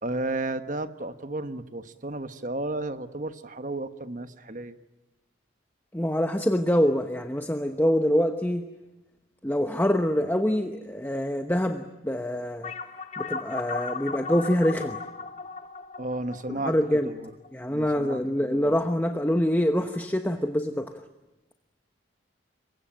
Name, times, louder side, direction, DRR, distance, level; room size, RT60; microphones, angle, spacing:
voice 1, 0.0-4.8 16.0-16.7 17.0-17.3 17.7-18.7, right 2 dB, 40° right, 10 dB, 1.3 m, -33 dB
voice 2, 5.9-8.6 9.4-12.7 13.2-15.0 16.5-17.1 17.5-21.0, equal, 10° left, 6 dB, 1.0 m, -25 dB
sound 1, 12.6-17.5, left 5 dB, 35° left, 1.4 m, -36 dB
27.5 x 23.5 x 9.0 m, 1.1 s
head